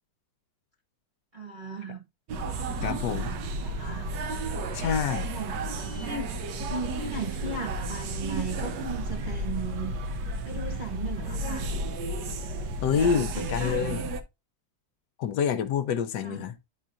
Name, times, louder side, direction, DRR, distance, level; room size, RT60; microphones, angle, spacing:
voice 1, 1.3-2.1 3.0-3.3 3.6-4.1 5.3-6.3 6.7-9.9 10.4-11.7 12.9-14.1 16.2-16.5, right 4 dB, 40° right, 0.7 m, -37 dB
sound 1, 2.3-14.2, right 1 dB, 70° right, 1.3 m, -32 dB
voice 2, 2.8-3.3 4.7-5.3 12.8-14.0 15.2-16.6, left 7 dB, 75° left, 1.2 m, -27 dB
9.8 x 4.5 x 2.5 m
omnidirectional pair, 2.0 m